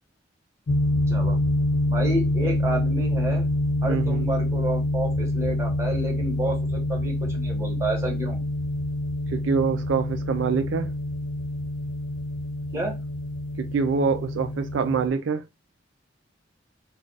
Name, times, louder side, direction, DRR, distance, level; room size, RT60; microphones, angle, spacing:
sound 1, 0.7-15.1, left 1 dB, 70° left, 0.5 m, -26 dB
voice 1, 1.9-3.5 3.8-8.4 12.7-13.0, right 1 dB, 15° right, 1.0 m, -30 dB
voice 2, 3.9-4.3 9.3-10.9 13.6-15.4, right 5 dB, 75° right, 0.4 m, -25 dB
2.4 x 2.3 x 3.8 m
head